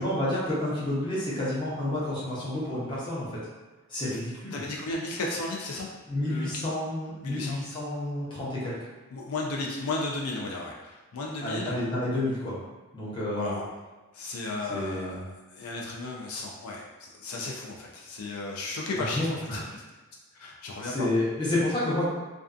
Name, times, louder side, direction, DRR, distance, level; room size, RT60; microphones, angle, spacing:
voice 1, 0.0-3.3 3.9-4.6 6.1-8.8 11.4-12.6 12.9-13.6 14.7-15.2 18.9-19.6 20.8-22.1, left 1 dB, 20° left, -8 dB, 0.7 m, -30 dB
voice 2, 4.5-5.9 6.2-6.5 7.2-7.6 9.1-11.8 13.3-13.7 14.1-19.8 20.3-21.1, left 2 dB, 80° left, -2 dB, 0.4 m, -34 dB
2.5 x 2.3 x 2.4 m, 1.2 s
head